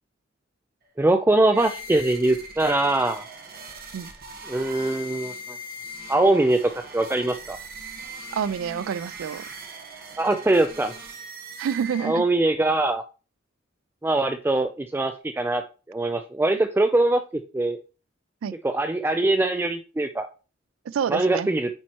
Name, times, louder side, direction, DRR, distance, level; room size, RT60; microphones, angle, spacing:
voice 1, 1.0-3.2 4.5-5.6 6.1-7.6 10.2-10.9 12.0-13.0 14.0-15.6 15.9-17.2 17.5-17.8 18.6-20.3 21.1-21.7, right 2 dB, 10° right, 0.4 m, -22 dB
sound 1, 1.5-12.5, right 1 dB, 50° right, 1.3 m, -40 dB
voice 2, 8.3-9.4 11.6-12.2 18.4-18.5 20.9-21.5, right 7 dB, 85° right, 0.3 m, -28 dB
8.9 x 4.2 x 3.0 m
head